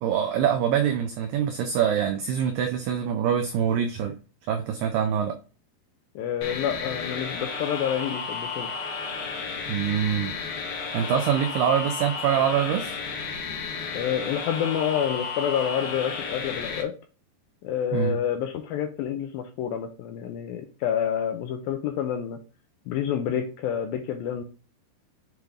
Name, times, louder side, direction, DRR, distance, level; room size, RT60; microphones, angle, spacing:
voice 1, 0.0-4.2 4.5-5.4 9.7-10.4 10.9-13.0 17.9-18.2, right 8 dB, 85° right, 1.9 m, -24 dB
voice 2, 6.2-8.7 13.9-16.9 17.6-22.4 22.9-24.4, left 9 dB, 80° left, 2.2 m, -28 dB
sound 1, 6.4-16.8, left 5 dB, 60° left, 2.3 m, -33 dB
8.0 x 3.4 x 3.5 m
omnidirectional pair, 4.8 m